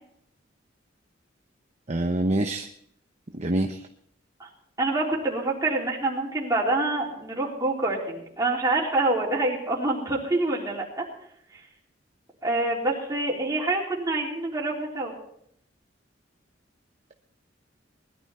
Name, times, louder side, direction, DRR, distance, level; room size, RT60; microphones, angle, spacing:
voice 1, 1.9-2.7 3.3-3.8, right 1 dB, 35° right, 4 dB, 0.9 m, -25 dB
voice 2, 4.8-11.0 12.4-15.1, right 2 dB, 20° right, -3 dB, 4.0 m, -26 dB
20.5 x 12.0 x 4.3 m, 0.70 s
head